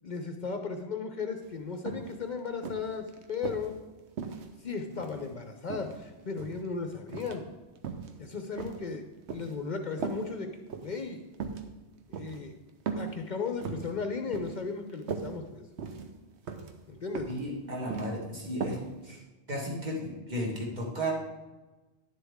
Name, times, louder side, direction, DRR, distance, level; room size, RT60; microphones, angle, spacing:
voice 1, 0.0-3.8 4.6-7.5 8.2-9.0 9.3-10.5 10.8-11.2 12.1-12.5 12.9-15.6 16.9-17.3, left 5 dB, 50° left, 5 dB, 0.7 m, -36 dB
sound 1, 1.4-1.5 1.9-2.1 2.6-3.7 4.2-5.3 5.7-6.6 7.1-7.4 7.8-8.1 8.6-9.6 10.0-10.2 10.7-10.9 11.3-11.6 12.1-12.4 12.9-13.1 13.5-13.9 14.3-14.6 14.9-15.3 15.8-16.1 16.5-16.7 17.1-17.4 17.7-18.1 18.6-18.8 19.2-19.3, right 6 dB, 75° right, 1.1 m, -37 dB
voice 2, 17.3-18.8 19.0-19.2 19.5-21.1, equal, 40° right, -2 dB, 1.8 m, -34 dB
10.5 x 7.2 x 3.6 m, 1.1 s
omnidirectional pair, 1.2 m